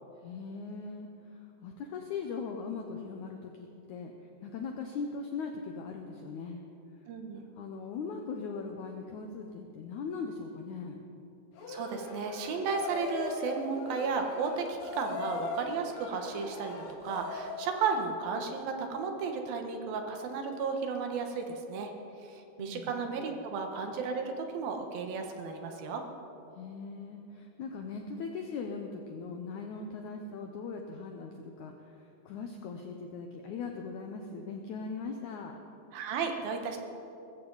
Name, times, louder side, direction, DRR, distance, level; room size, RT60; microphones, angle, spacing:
voice 1, 0.2-4.1 4.4-6.6 7.6-11.0 22.6-23.0 26.5-35.6, left 5 dB, 90° left, 3 dB, 1.7 m, -40 dB
voice 2, 7.1-7.5 11.7-21.9 22.2-26.0 35.9-36.8, right 5 dB, 70° right, 4 dB, 2.8 m, -34 dB
sound 1, 11.6-17.7, left 3 dB, 65° left, 3.2 m, -39 dB
20.0 x 14.5 x 4.0 m, 2.8 s
omnidirectional pair, 4.5 m